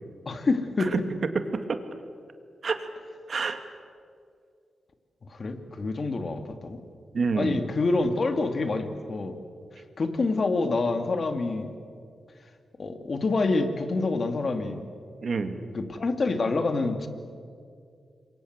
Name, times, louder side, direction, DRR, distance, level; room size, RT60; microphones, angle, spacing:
voice 1, 0.3-0.9 5.3-6.8 7.3-9.4 10.0-11.7 12.8-14.8 15.7-17.1, left 3 dB, 50° left, 7 dB, 2.6 m, -27 dB
voice 2, 1.3-1.8 2.6-2.9 3.3-3.6 7.1-7.6 15.2-15.6, right 4 dB, 60° right, 8 dB, 2.3 m, -28 dB
27.0 x 23.0 x 8.2 m, 2.3 s
cardioid pair, 80°, 0 cm